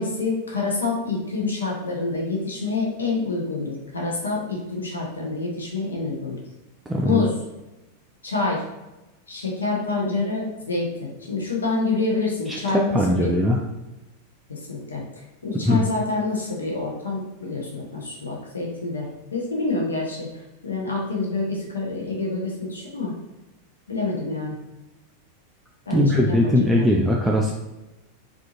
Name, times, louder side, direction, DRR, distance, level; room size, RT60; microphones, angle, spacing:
voice 1, 0.0-6.4 7.0-7.3 8.2-8.6 9.3-10.9 11.3-13.3 14.5-20.3 20.6-23.1 23.9-24.6 25.9-26.9, left 3 dB, 75° left, -2 dB, 0.7 m, -27 dB
voice 2, 6.9-7.2 12.5-13.6 15.7-15.8 25.9-27.5, left 1 dB, 5° right, -2 dB, 0.3 m, -20 dB
3.6 x 2.5 x 2.7 m, 1.0 s
figure-of-eight pair, 90°, 0 cm